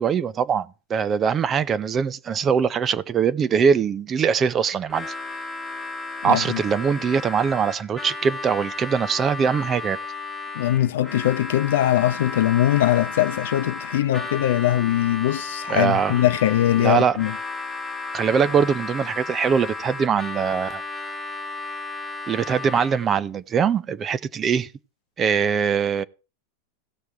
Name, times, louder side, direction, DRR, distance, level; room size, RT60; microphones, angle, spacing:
voice 1, 0.0-5.1 6.2-10.0 15.7-16.2 16.8-17.2 18.1-20.8 22.3-24.7 25.2-26.0, right 7 dB, 20° right, 0.5 m, -22 dB
Harmonica, 4.9-23.1, left 3 dB, 5° left, 1.2 m, -34 dB
voice 2, 6.2-6.6 10.5-17.3, left 13 dB, 75° left, 0.7 m, -21 dB
17.0 x 6.4 x 3.4 m
supercardioid pair, 150°, 0 cm